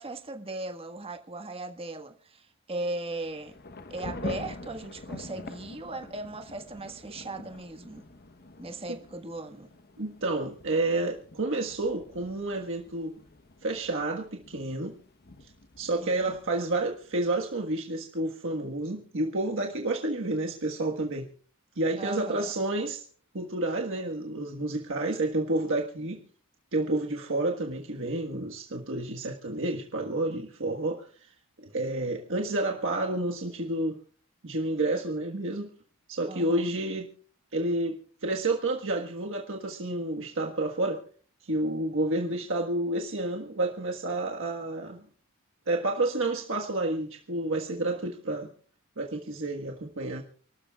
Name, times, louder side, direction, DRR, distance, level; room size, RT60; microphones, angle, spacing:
voice 1, 0.0-3.5 3.9-8.0 8.6-9.7 15.9-16.3 22.0-22.5 36.3-36.7, right 2 dB, 25° right, 1.6 m, -38 dB
Thunder / Rain, 3.1-17.6, left 2 dB, 45° left, 1.0 m, -45 dB
voice 2, 10.0-13.1 13.6-15.0 15.4-15.5 15.8-21.3 21.7-23.0 23.3-26.2 26.7-31.1 31.6-34.0 34.4-35.7 36.1-37.1 37.5-41.0 41.4-45.0 45.7-48.5 49.0-50.2, right 2 dB, 60° right, 1.5 m, -30 dB
29.0 x 13.0 x 2.4 m
head